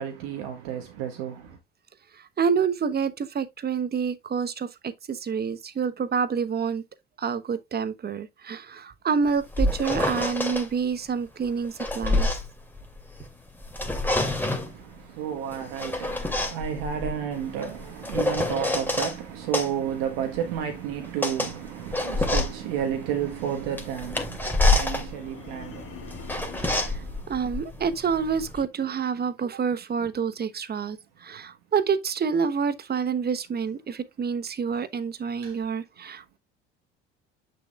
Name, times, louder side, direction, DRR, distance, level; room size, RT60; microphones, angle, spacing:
voice 1, 0.0-1.6 14.5-27.3 35.4-35.6, right 9 dB, 70° right, 1.4 m, -32 dB
voice 2, 2.4-6.8 7.2-12.3 26.8-36.4, right 6 dB, 30° right, 1.1 m, -28 dB
sound 1, 9.3-10.7 11.5-13.3 13.6-14.8 15.5-19.2 19.5-28.6, left 2 dB, 5° left, 2.6 m, -27 dB
sound 2, 25.0-27.1, left 6 dB, 45° left, 3.1 m, -43 dB
8.3 x 6.6 x 2.4 m
hypercardioid pair, 65°, 31 cm